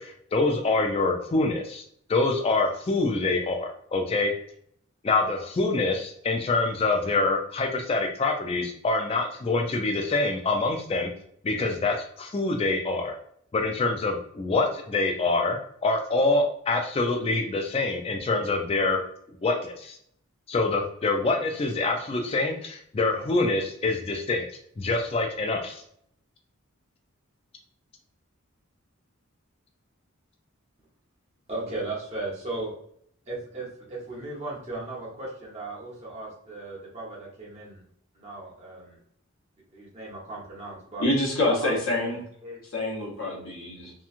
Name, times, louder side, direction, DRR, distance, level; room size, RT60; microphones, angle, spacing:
voice 1, 0.0-1.8 2.1-4.3 5.0-11.1 11.4-13.2 13.5-19.0 19.4-20.0 20.5-24.4 24.8-25.8, left 3 dB, 25° left, 3 dB, 0.3 m, -25 dB
voice 2, 31.5-32.7 33.3-37.8 38.2-39.0 39.7-41.0 41.4-42.1 42.4-42.6, right 2 dB, 30° right, -5 dB, 0.9 m, -36 dB
voice 3, 41.0-42.2 42.7-43.9, left 1 dB, 70° left, -4 dB, 0.9 m, -26 dB
2.9 x 2.2 x 2.4 m, 0.66 s
head